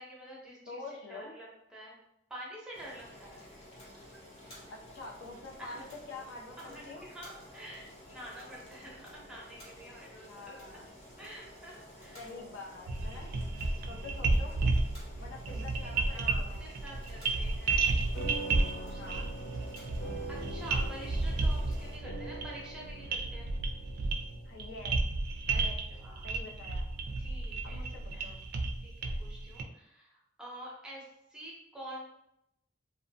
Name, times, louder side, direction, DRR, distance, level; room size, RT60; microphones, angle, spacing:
voice 1, 0.0-0.8 1.1-1.9 2.3-3.4 3.8-4.1 5.6-5.9 6.6-10.8 11.2-12.3 13.0-13.9 15.5-18.0 18.3-19.4 19.9-23.5 25.5-26.4 27.2-27.8 28.1-28.3 28.8-32.1, right 1 dB, 5° right, -5 dB, 0.6 m, -48 dB
voice 2, 0.7-1.3 4.7-7.1 10.3-10.9 12.2-13.3 13.9-14.6 15.2-16.6 19.0-19.3 24.4-25.0 25.5-25.8 26.2-26.9 27.6-28.4, left 3 dB, 70° left, 0 dB, 0.4 m, -46 dB
Boiling, 2.7-22.0, equal, 30° left, 0.7 m, -52 dB
sound 1, 12.9-29.6, right 3 dB, 55° right, 0.3 m, -32 dB
sound 2, 18.1-26.9, right 1 dB, 55° left, 1.0 m, -45 dB
2.9 x 2.0 x 2.6 m, 0.84 s
head